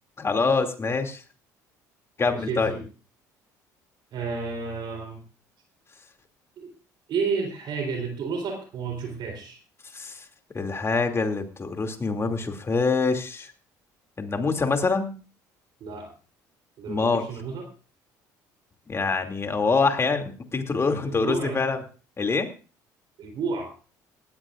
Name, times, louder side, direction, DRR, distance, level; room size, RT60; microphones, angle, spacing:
voice 1, 0.2-1.2 2.2-2.7 9.9-10.2 10.5-13.5 14.2-15.1 16.9-17.2 18.9-21.8 22.2-22.5, left 4 dB, 30° left, 5 dB, 2.6 m, -25 dB
voice 2, 2.3-2.8 4.1-5.2 6.6-6.7 7.1-9.6 15.8-16.1 16.8-17.7 21.1-21.6 23.2-23.7, right 5 dB, 60° right, 3 dB, 3.8 m, -31 dB
19.0 x 14.0 x 2.5 m, 0.35 s
hypercardioid pair, 70°, 9 cm